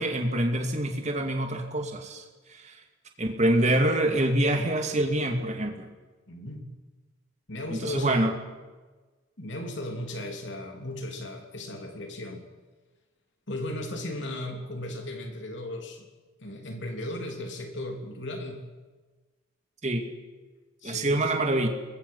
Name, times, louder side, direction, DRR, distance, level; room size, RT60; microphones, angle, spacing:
voice 1, 0.0-2.7 3.2-5.9 7.7-8.3 19.8-20.1 20.8-21.7, right 1 dB, 35° right, 4 dB, 2.5 m, -26 dB
voice 2, 6.3-6.7 7.5-8.3 9.4-12.4 13.5-16.0 16.4-18.6 20.8-21.3, left 1 dB, 55° left, 3 dB, 3.4 m, -36 dB
28.0 x 21.5 x 5.7 m, 1.3 s
head